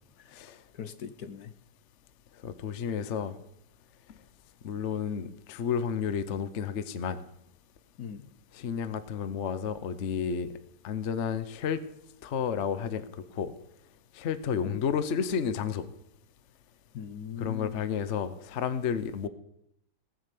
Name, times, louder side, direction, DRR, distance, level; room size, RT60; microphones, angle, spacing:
voice 1, 0.7-1.5 8.0-8.3 14.6-14.8 16.9-17.9, left 7 dB, 65° left, 12 dB, 1.4 m, -40 dB
voice 2, 2.4-3.4 4.6-7.2 8.5-10.5 10.8-11.8 12.2-13.0 13.3-13.5 14.1-15.9 17.4-19.3, left 7 dB, 50° left, 13 dB, 1.0 m, -31 dB
18.0 x 7.8 x 8.4 m, 0.79 s
omnidirectional pair, 1.8 m